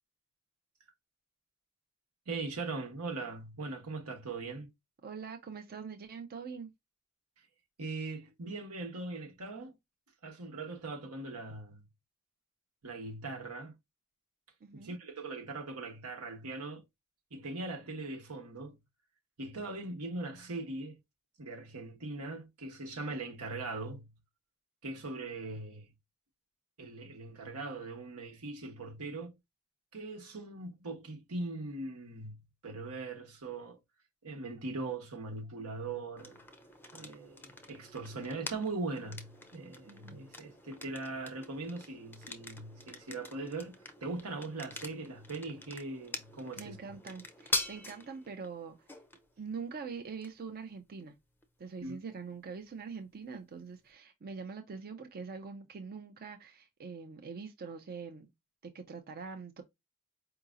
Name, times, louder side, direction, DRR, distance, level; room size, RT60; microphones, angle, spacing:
voice 1, 2.3-4.7 7.8-9.7 10.2-11.9 12.8-13.7 14.7-16.8 17.3-18.8 19.4-21.0 21.4-24.1 24.8-25.9 26.8-29.4 29.9-33.8 34.2-36.4 36.9-47.0 51.8-52.0, right 3 dB, 85° right, 1.1 m, -40 dB
voice 2, 5.0-6.7 14.6-14.9 39.9-40.2 46.6-48.7 49.4-51.1 51.6-58.3 58.6-59.6, right 5 dB, 45° right, 0.5 m, -44 dB
sound 1, 36.2-53.9, left 3 dB, 10° left, 0.5 m, -45 dB
4.7 x 2.8 x 2.5 m
head